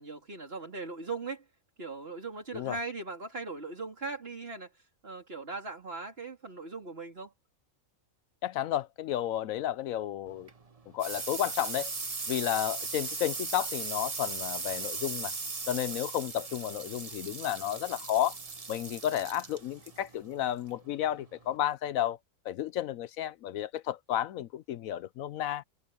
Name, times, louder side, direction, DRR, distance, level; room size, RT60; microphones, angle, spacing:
voice 1, 0.0-1.4 1.8-4.7 5.0-7.3, right 3 dB, 45° right, 3.6 m, -39 dB
voice 2, 8.4-10.5 10.9-11.9 12.3-15.3 15.7-18.4 18.7-22.2 22.4-25.6, left 12 dB, 75° left, 1.0 m, -32 dB
sound 1, 10.3-21.6, right 4 dB, 25° right, 1.2 m, -38 dB
omnidirectional pair, 1.5 m